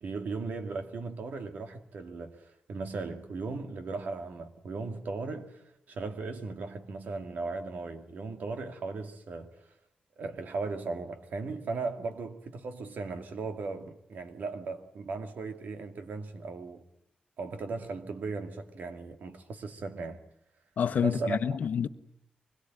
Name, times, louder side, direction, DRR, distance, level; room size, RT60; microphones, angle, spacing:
voice 1, 0.0-9.5 10.2-16.8 17.4-20.2 21.0-21.4, right 3 dB, 85° right, 2.4 m, -37 dB
voice 2, 20.8-21.9, left 7 dB, 70° left, 1.0 m, -28 dB
24.5 x 21.5 x 9.2 m
wide cardioid pair, 175°, 3 cm